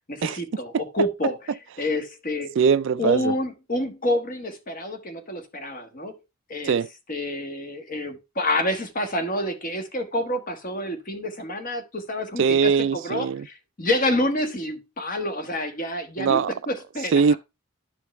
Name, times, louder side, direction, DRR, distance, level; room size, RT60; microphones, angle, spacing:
voice 1, 0.1-1.4 1.8-2.5 3.0-6.2 6.5-6.8 7.1-17.4, left 1 dB, 40° left, 1.4 m, -28 dB
voice 2, 2.6-3.3 6.6-6.9 12.4-13.5 16.2-16.5 17.1-17.4, right 6 dB, 55° right, 0.3 m, -21 dB
11.0 x 5.0 x 3.2 m
head